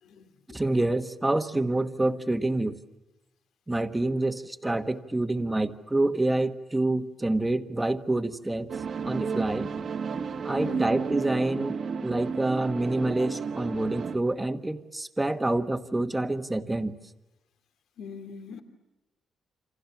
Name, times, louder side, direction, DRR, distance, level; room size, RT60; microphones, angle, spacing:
voice 1, 0.0-0.6 10.6-11.0 18.0-18.6, left 5 dB, 75° left, 7 dB, 2.9 m, -41 dB
voice 2, 0.5-2.8 3.7-8.7 9.0-9.7 10.4-11.8 12.0-16.9, right 2 dB, 10° right, 9 dB, 1.3 m, -27 dB
sound 1, 8.7-14.2, right 5 dB, 45° right, 1.4 m, -32 dB
28.5 x 27.0 x 7.2 m, 1.0 s
cardioid pair, 150°, 0 cm